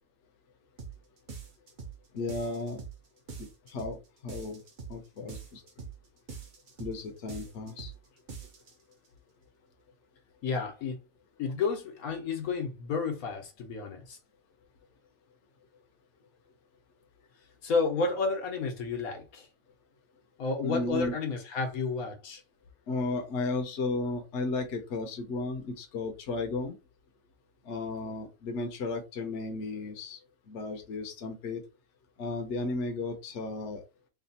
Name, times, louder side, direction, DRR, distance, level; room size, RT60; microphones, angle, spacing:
sound 1, 0.8-1.0 1.3-2.0 2.3-3.0 3.3-4.0 4.3-5.0 5.3-6.0 6.3-7.0 7.3-8.0 8.3-8.7, right 5 dB, 45° right, 0.7 m, -43 dB
voice 1, 2.1-2.8 3.4-4.6 4.9-5.6 6.8-7.9 20.6-21.1 22.9-26.8 27.6-30.2 30.5-31.6 32.2-33.8, left 3 dB, 60° left, 1.0 m, -34 dB
voice 2, 10.4-11.0 11.4-14.2 17.6-19.5 20.4-22.4, left 4 dB, 80° left, 1.4 m, -31 dB
3.3 x 2.3 x 4.1 m
omnidirectional pair, 1.5 m